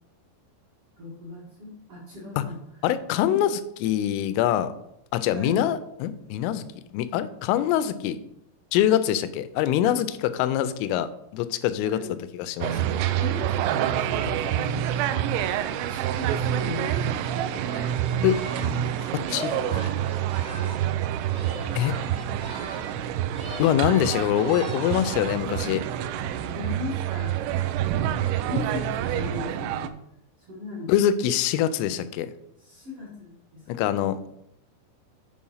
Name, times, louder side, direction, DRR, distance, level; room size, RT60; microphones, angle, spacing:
voice 1, 1.0-2.9 3.2-3.4 5.3-5.6 11.8-12.2 12.6-15.1 15.7-17.1 18.5-19.1 26.4-27.3 28.5-30.0 30.4-30.9 32.6-33.9, left 3 dB, 70° right, -6 dB, 1.3 m, -37 dB
voice 2, 2.8-4.7 5.1-6.6 6.9-8.2 8.7-12.0 12.3-12.7 14.3-14.4 18.2-18.4 19.3-19.6 21.8-21.9 23.6-25.8 30.9-32.3 33.7-34.3, left 11 dB, 90° left, 12 dB, 3.2 m, -24 dB
sound 1, 12.6-29.9, right 11 dB, 85° right, 3.0 m, -27 dB
Singing, 17.2-21.0 21.3-23.0 23.3-25.2, right 1 dB, 20° right, 0.6 m, -40 dB
8.5 x 4.8 x 5.5 m, 0.80 s
omnidirectional pair, 5.7 m